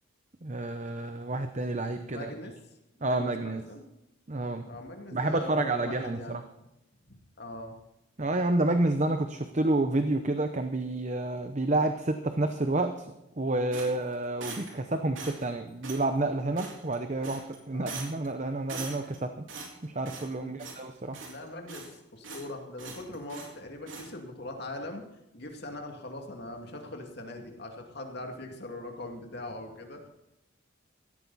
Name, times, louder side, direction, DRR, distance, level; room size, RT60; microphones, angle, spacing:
voice 1, 0.4-2.3 3.0-3.6 4.3-4.7 5.1-6.4 8.2-19.5 19.8-21.2, right 2 dB, 35° right, 7 dB, 0.8 m, -29 dB
voice 2, 2.1-2.5 3.0-3.9 4.6-6.4 7.4-7.8 17.7-18.0 20.4-20.6 21.3-25.1 25.3-30.1, left 1 dB, 50° left, 3 dB, 2.5 m, -41 dB
Bucket Of Scrap Metal Rattles, 13.7-14.8 15.1-15.5 15.8-16.1 16.6-17.0 17.2-17.6 17.9-18.3 18.7-19.2 19.5-20.3 20.6-20.9 21.1-21.9 22.2-22.5 22.8-23.5 23.9-24.1, right 4 dB, 65° right, 3.9 m, -42 dB
17.5 x 14.0 x 4.2 m, 0.90 s
head